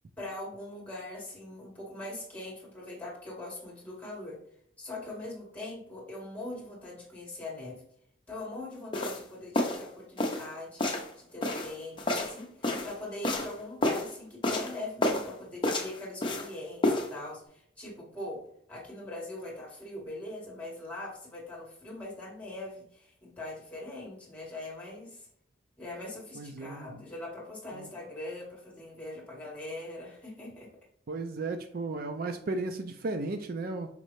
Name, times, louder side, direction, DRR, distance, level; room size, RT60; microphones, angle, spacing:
voice 1, 0.2-4.4 4.8-7.8 8.3-10.8 11.2-18.4 18.7-25.3 25.8-30.7, left 2 dB, 10° left, -4 dB, 1.9 m, -42 dB
sound 1, 8.9-9.2 9.5-9.8 10.2-10.5 10.8-11.1 11.4-12.9 13.2-13.5 13.8-14.1 14.4-14.7 15.0-15.3 15.6-16.5 16.8-17.1, left 1 dB, 25° left, 0.7 m, -29 dB
voice 2, 26.4-27.0 27.7-27.9 31.1-33.9, right 3 dB, 50° right, 6 dB, 0.4 m, -35 dB
5.2 x 3.2 x 3.1 m, 0.68 s
head